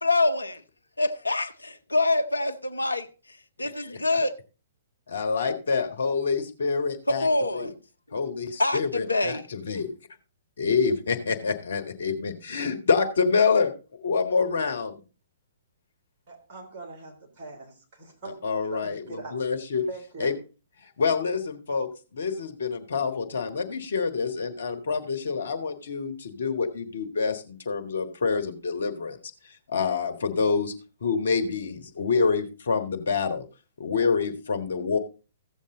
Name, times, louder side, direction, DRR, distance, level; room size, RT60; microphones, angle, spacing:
voice 1, 0.0-0.6 1.0-3.1 3.6-4.3 7.1-7.7 8.6-9.4, left 2 dB, 80° left, 0.8 m, -25 dB
voice 2, 3.6-4.0 5.1-7.3 7.5-7.7 8.1-9.9 10.6-13.7 14.0-15.0 18.4-19.8 20.2-20.3 20.8-29.2 29.4-30.7 31.0-33.4 33.8-35.0, left 5 dB, 60° left, 1.4 m, -27 dB
voice 3, 16.3-18.4 18.7-19.4 19.9-20.4, right 3 dB, 35° right, 3.2 m, -42 dB
14.5 x 7.2 x 3.8 m
figure-of-eight pair, 120°, 0 cm